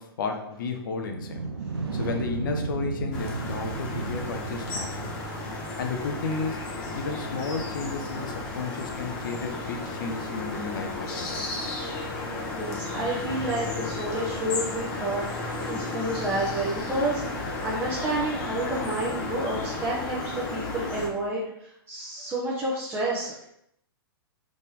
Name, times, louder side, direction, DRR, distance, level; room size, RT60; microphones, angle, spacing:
voice 1, 0.0-1.5 1.9-5.2 5.8-6.6 6.9-11.4, left 4 dB, 55° left, 4 dB, 0.8 m, -33 dB
sound 1, 1.0-5.8, right 4 dB, 75° right, 0.6 m, -34 dB
sound 2, 3.1-21.1, left 2 dB, 35° left, 1.1 m, -33 dB
voice 2, 12.5-23.4, right 1 dB, 20° right, -6 dB, 1.0 m, -30 dB
4.1 x 3.6 x 3.6 m, 0.76 s
figure-of-eight pair, 110°, 13 cm